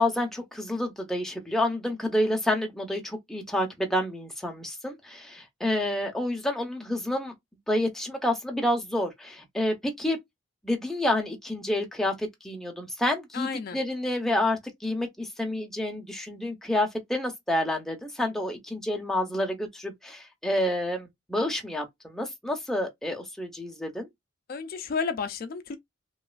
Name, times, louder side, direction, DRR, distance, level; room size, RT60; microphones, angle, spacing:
voice 1, 0.0-7.3 7.7-10.2 10.6-24.1, left 1 dB, ahead, 0.6 m, -29 dB
voice 2, 13.3-13.8 24.5-25.8, left 5 dB, 45° left, 0.3 m, -32 dB
3.0 x 2.3 x 2.4 m
head